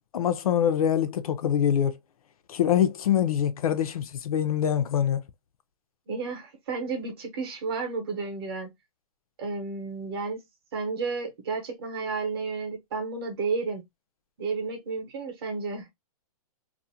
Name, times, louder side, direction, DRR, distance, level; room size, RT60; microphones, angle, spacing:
voice 1, 0.1-2.0 2.5-5.2, left 9 dB, 65° left, 0.5 m, -24 dB
voice 2, 6.1-8.7 9.4-10.4 10.7-13.8 14.4-15.9, right 4 dB, 40° right, 0.8 m, -32 dB
2.5 x 2.0 x 2.7 m
hypercardioid pair, 180°, 20 cm